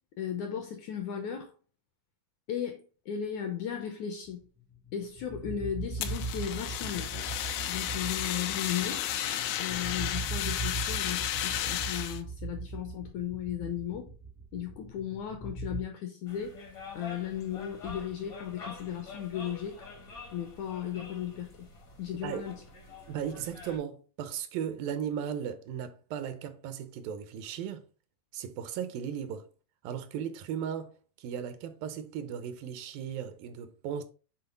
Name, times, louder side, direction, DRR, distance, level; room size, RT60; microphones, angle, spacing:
voice 1, 0.2-1.5 2.5-4.5 4.9-7.1 7.7-9.1 9.6-14.1 14.5-16.6 17.0-19.9 20.3-21.7 22.0-22.6, left 9 dB, 75° left, 1.8 m, -36 dB
sound 1, 4.7-15.8, right 3 dB, 5° right, 0.5 m, -39 dB
Fire, 6.0-12.2, left 11 dB, 90° left, 2.6 m, -33 dB
sound 2, 16.3-23.8, left 4 dB, 55° left, 0.9 m, -47 dB
voice 2, 23.1-27.8 28.3-29.4 29.8-34.0, right 8 dB, 80° right, 2.4 m, -36 dB
7.9 x 3.8 x 3.8 m
omnidirectional pair, 4.2 m